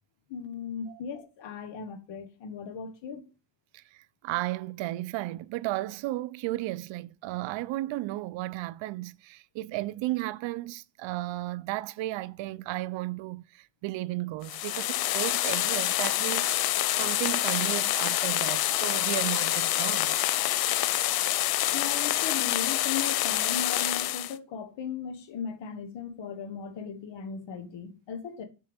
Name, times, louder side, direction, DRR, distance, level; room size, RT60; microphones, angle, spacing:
voice 1, 0.3-3.3 21.7-28.4, left 6 dB, 75° left, 1.4 m, -37 dB
voice 2, 3.7-20.2, right 17 dB, 90° right, 0.6 m, -34 dB
sound 1, 14.4-24.4, left 14 dB, 55° left, 0.5 m, -27 dB
7.3 x 4.5 x 5.1 m
cardioid pair, 140°, 44 cm